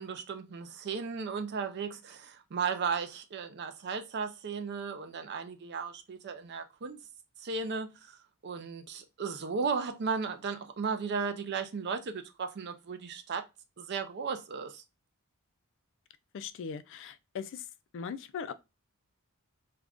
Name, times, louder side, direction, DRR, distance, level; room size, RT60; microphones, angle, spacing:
voice 1, 0.0-7.0 7.4-8.1 8.4-13.4 13.8-14.8, right 5 dB, 50° right, 0.4 m, -35 dB
voice 2, 16.3-17.6 17.9-18.5, left 6 dB, 60° left, 0.3 m, -39 dB
2.4 x 2.3 x 3.4 m
head